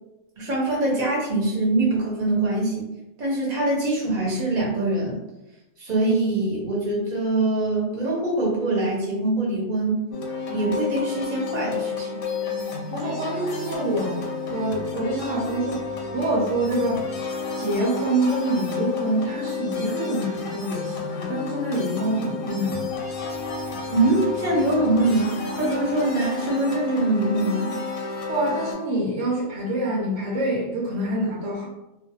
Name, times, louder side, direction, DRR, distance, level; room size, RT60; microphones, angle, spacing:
voice 1, 0.4-2.9 3.2-5.2 5.8-10.0 10.5-12.1 23.9-27.7, right 2 dB, 40° right, -3 dB, 0.7 m, -23 dB
sound 1, 10.1-28.7, left 4 dB, 70° left, 0.8 m, -31 dB
voice 2, 12.9-15.8 16.1-17.1 17.6-22.9 28.3-31.7, right 1 dB, 75° right, -4 dB, 1.0 m, -26 dB
2.4 x 2.1 x 2.7 m, 0.96 s
omnidirectional pair, 1.3 m